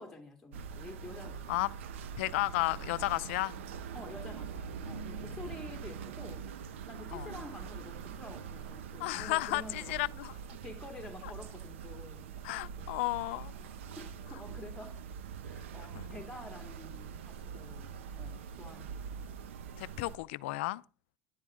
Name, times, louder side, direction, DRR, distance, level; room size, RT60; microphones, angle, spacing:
voice 1, 0.0-1.6 3.9-6.5 6.9-9.9 10.6-12.3 12.6-12.9 13.6-15.0 15.4-19.5, left 2 dB, 5° left, 2.4 m, -49 dB
sound 1, 0.5-20.2, right 6 dB, 90° right, 0.9 m, -44 dB
voice 2, 2.2-3.6 7.1-7.3 9.0-10.4 12.4-13.5 16.0-16.1 19.8-20.8, left 20 dB, 80° left, 0.5 m, -33 dB
11.0 x 10.5 x 3.8 m
supercardioid pair, 85°, 7 cm